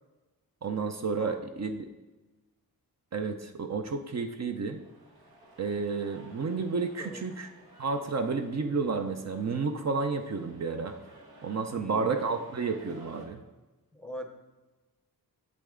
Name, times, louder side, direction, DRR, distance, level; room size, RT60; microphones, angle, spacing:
voice 1, 0.6-1.9 3.1-4.8 5.6-7.5 7.8-11.0 11.4-13.4, right 4 dB, 45° right, 6 dB, 0.6 m, -31 dB
sound 1, 4.3-13.3, right 1 dB, 85° right, 1.7 m, -55 dB
voice 2, 11.7-12.1 13.9-14.3, equal, ahead, 5 dB, 0.7 m, -41 dB
8.5 x 7.7 x 3.7 m, 1.2 s
wide cardioid pair, 175°, 36 cm